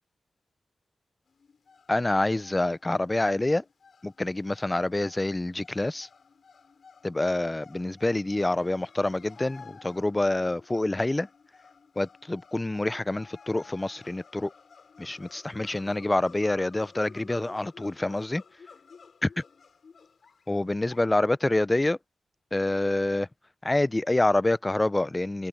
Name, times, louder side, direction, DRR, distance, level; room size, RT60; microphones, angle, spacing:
sound 1, 1.3-21.1, left 5 dB, 65° left, 6.0 m, -53 dB
voice 1, 1.9-3.6 4.0-6.1 7.0-11.3 12.0-14.5 15.0-18.4 19.2-19.3 20.5-22.0 22.5-23.3 23.6-25.5, left 2 dB, 25° left, 0.5 m, -27 dB
cardioid pair, 45°, 0 cm